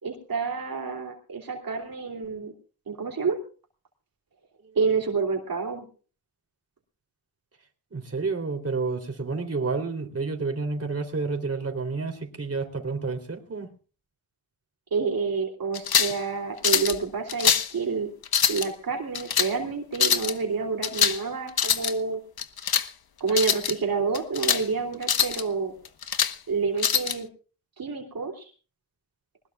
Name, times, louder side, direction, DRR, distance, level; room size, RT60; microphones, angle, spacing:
voice 1, 0.0-2.5 2.9-3.4 4.7-5.8 14.9-18.1 18.5-22.2 23.2-25.7 26.5-27.3 27.8-28.5, right 4 dB, 60° right, 3.0 m, -28 dB
voice 2, 7.9-13.7, right 4 dB, 35° right, 3.3 m, -30 dB
sound 1, 15.7-16.2 16.6-17.0 17.3-17.7 18.2-18.7 19.1-19.5 19.9-20.3 20.8-21.2 21.5-21.9 22.4-22.9 23.3-23.7 24.1-24.6 25.0-25.4 25.8-26.3 26.8-27.2, left 8 dB, 65° left, 1.2 m, -24 dB
21.0 x 20.0 x 2.4 m
wide cardioid pair, 90°, 39 cm